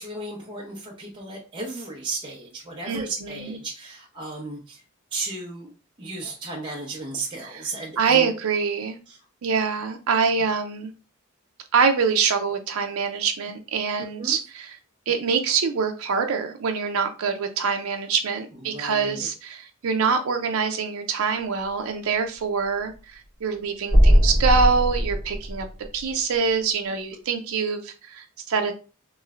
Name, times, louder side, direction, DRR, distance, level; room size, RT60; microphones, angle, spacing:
voice 1, 0.0-4.8 5.1-5.7 6.0-8.3 9.1-9.2 14.2-14.3 18.7-19.3, right 3 dB, 25° right, 0.7 m, -34 dB
voice 2, 2.9-3.6 7.5-7.6 8.0-9.0 9.4-10.9 11.7-14.8 15.1-25.7 25.9-28.7, right 5 dB, 90° right, 0.4 m, -25 dB
sound 1, 23.9-26.1, equal, 45° left, 1.1 m, -19 dB
3.1 x 3.0 x 2.4 m
head